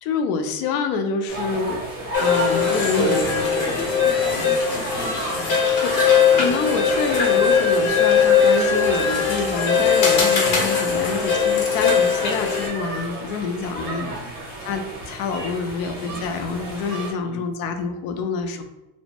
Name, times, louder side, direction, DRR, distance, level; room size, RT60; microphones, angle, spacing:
voice 1, 0.0-1.8 2.2-3.3 5.8-5.9 6.3-14.1 14.6-18.6, left 5 dB, 75° left, 6 dB, 0.5 m, -27 dB
sound 1, 1.3-17.1, right 2 dB, 30° right, 0.6 m, -34 dB
sound 2, 2.1-12.7, left 6 dB, 90° left, 1.0 m, -20 dB
voice 2, 2.6-5.6 6.0-6.5 10.5-10.8 13.8-14.3 17.2-17.4, right 3 dB, 10° left, -11 dB, 0.5 m, -33 dB
2.5 x 2.1 x 2.9 m, 0.98 s
cardioid pair, 180°, 45 cm